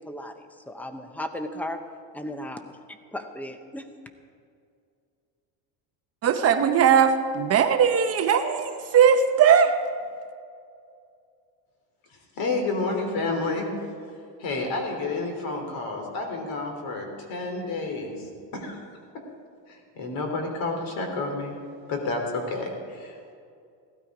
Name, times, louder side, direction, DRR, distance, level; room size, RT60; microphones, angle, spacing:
voice 1, 0.7-1.8 2.1-2.6 3.1-3.8, left 1 dB, 5° left, 7 dB, 0.7 m, -35 dB
voice 2, 6.2-9.7, right 7 dB, 35° right, 7 dB, 0.8 m, -19 dB
voice 3, 12.4-13.7 14.4-18.8 19.7-21.5 21.9-23.3, left 3 dB, 50° left, 3 dB, 3.4 m, -30 dB
17.0 x 12.5 x 4.9 m, 2.4 s
cardioid pair, 155°, 43 cm